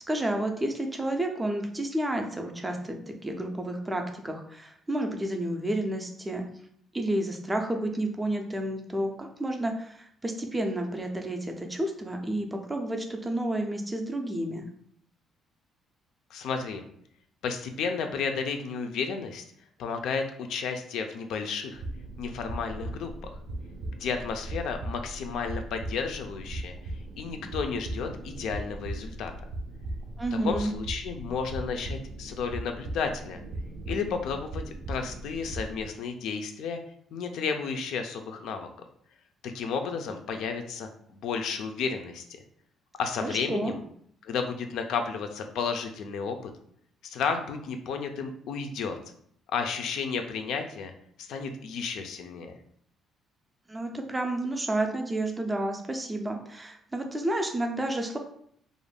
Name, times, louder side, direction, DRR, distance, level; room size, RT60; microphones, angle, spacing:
voice 1, 0.1-6.4 6.9-14.6 30.2-30.7 43.2-43.7 53.7-58.2, right 1 dB, 15° right, 4 dB, 0.3 m, -30 dB
voice 2, 16.3-16.8 17.4-19.4 19.8-21.8 22.2-23.3 24.0-29.3 30.3-33.4 33.9-36.8 37.1-38.7 39.4-42.3 43.0-43.8 44.2-46.5 47.0-49.0 49.5-50.9 51.2-52.5, left 5 dB, 70° left, 5 dB, 0.3 m, -32 dB
sound 1, 21.7-35.9, right 1 dB, 80° right, 0.4 m, -38 dB
2.4 x 2.1 x 3.2 m, 0.67 s
cardioid pair, 155°, 0 cm